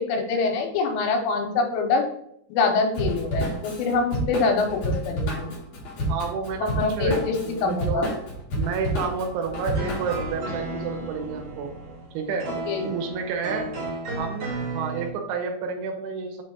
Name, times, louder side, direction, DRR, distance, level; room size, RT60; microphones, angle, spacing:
voice 1, 0.0-2.0 2.5-5.5 6.6-7.4 7.6-8.1 12.7-12.9, left 4 dB, 85° left, 3 dB, 3.3 m, -24 dB
Drum kit / Drum, 2.9-10.3, right 1 dB, 65° left, 2.0 m, -29 dB
voice 2, 6.1-8.2 8.6-11.8 12.1-12.5 12.8-13.7 14.2-16.4, right 5 dB, 75° right, 4 dB, 3.1 m, -30 dB
sound 1, 9.7-15.1, right 2 dB, 55° right, 2.5 m, -33 dB
7.0 x 3.1 x 5.2 m, 0.72 s
omnidirectional pair, 5.7 m